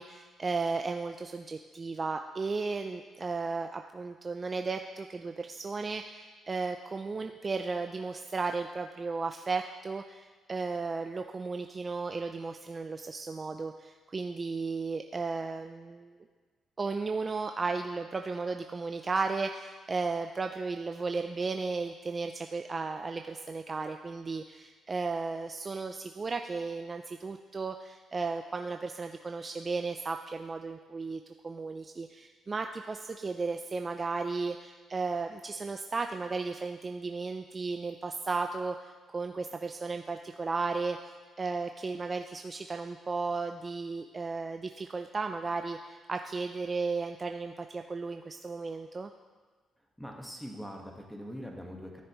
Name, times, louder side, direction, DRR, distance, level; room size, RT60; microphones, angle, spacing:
voice 1, 0.0-16.2 16.8-41.0 41.4-49.1, right 4 dB, 30° right, 5 dB, 0.4 m, -35 dB
voice 2, 50.0-52.0, equal, 5° left, 0 dB, 1.5 m, -42 dB
13.5 x 6.6 x 3.1 m, 1.4 s
cardioid pair, 90°, 0 cm